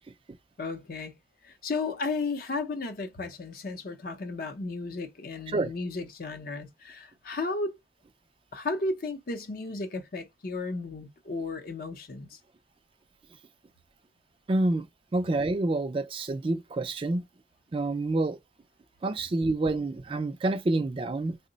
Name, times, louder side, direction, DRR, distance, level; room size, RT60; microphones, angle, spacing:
voice 1, 0.6-1.1 1.4-7.8 8.5-12.4, left 3 dB, 50° left, 0.6 m, -34 dB
voice 2, 14.5-14.9 15.1-17.2 17.7-18.4 19.0-21.4, right 2 dB, 30° right, 0.3 m, -28 dB
3.6 x 2.1 x 3.8 m
head